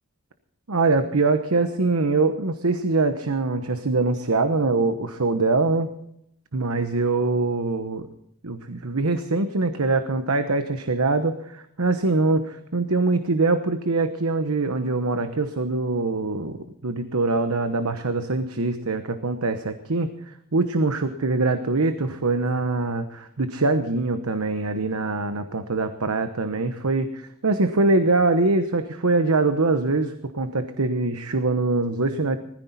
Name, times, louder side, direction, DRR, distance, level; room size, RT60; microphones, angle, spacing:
voice 1, 0.7-5.9 6.5-8.1 8.4-32.4, right 3 dB, 85° right, 9 dB, 1.1 m, -23 dB
20.5 x 14.5 x 4.2 m, 0.72 s
head